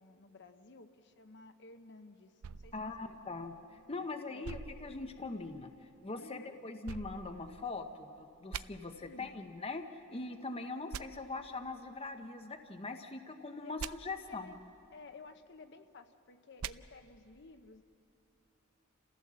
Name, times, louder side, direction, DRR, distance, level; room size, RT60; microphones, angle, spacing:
voice 1, 0.0-3.2 4.3-4.6 6.1-6.7 9.0-9.4 13.6-14.6 14.9-17.8, left 3 dB, 55° left, 8 dB, 0.9 m, -54 dB
sound 1, 2.4-3.8 4.4-5.7 6.8-8.0 8.5-8.6 10.9-11.0 13.8-13.9 16.6-16.7, right 7 dB, 75° right, 0.5 m, -45 dB
voice 2, 2.7-3.5 3.9-5.7 6.0-9.8 10.1-14.5, left 3 dB, 25° left, 6 dB, 0.8 m, -41 dB
29.5 x 15.5 x 7.5 m, 2.8 s
head